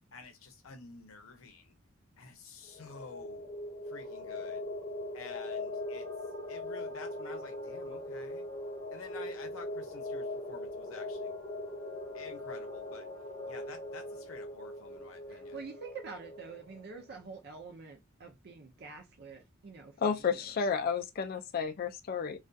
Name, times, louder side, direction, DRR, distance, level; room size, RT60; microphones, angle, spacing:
voice 1, 0.1-1.8 2.2-3.4 3.9-4.7 5.1-6.1 6.5-8.5 8.9-11.4 12.1-13.1 13.5-15.6, left 4 dB, 70° left, 0.7 m, -50 dB
sound 1, 2.6-17.0, left 2 dB, 25° left, 1.0 m, -41 dB
voice 2, 15.3-20.6, right 4 dB, 50° right, 0.4 m, -47 dB
voice 3, 20.0-22.4, left 6 dB, 45° left, 0.3 m, -31 dB
2.5 x 2.3 x 2.2 m
head